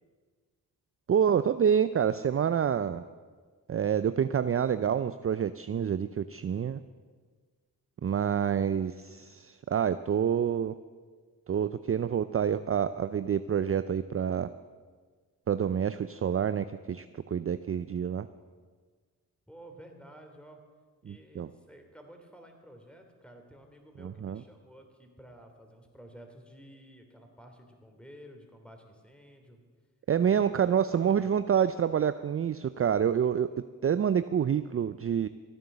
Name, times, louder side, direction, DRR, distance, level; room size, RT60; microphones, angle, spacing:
voice 1, 1.1-3.0 3.7-6.8 8.0-10.7 11.5-14.5 15.5-18.3 21.0-21.5 24.0-24.4 30.1-33.5 33.8-35.3, right 8 dB, 35° right, 13 dB, 0.5 m, -27 dB
voice 2, 19.5-20.6 21.0-29.6 30.3-31.3, equal, 5° left, 4 dB, 3.1 m, -52 dB
14.5 x 9.0 x 6.8 m, 1.5 s
supercardioid pair, 45°, 38 cm